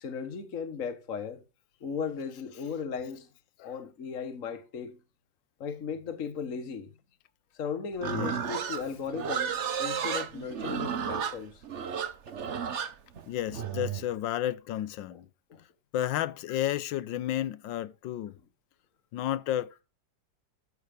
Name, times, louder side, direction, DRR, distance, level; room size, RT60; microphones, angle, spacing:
voice 1, 0.0-1.4 1.8-3.3 3.6-5.0 5.6-6.9 7.5-11.6 15.1-15.2 15.5-15.6 16.5-16.6, left 6 dB, 45° left, 1.6 m, -36 dB
Livestock farm animals working animals, 8.0-14.0, right 7 dB, 45° right, 1.1 m, -33 dB
voice 2, 13.3-15.3 15.9-18.4 19.1-19.8, left 12 dB, 80° left, 1.4 m, -32 dB
13.5 x 6.3 x 5.1 m
omnidirectional pair, 2.1 m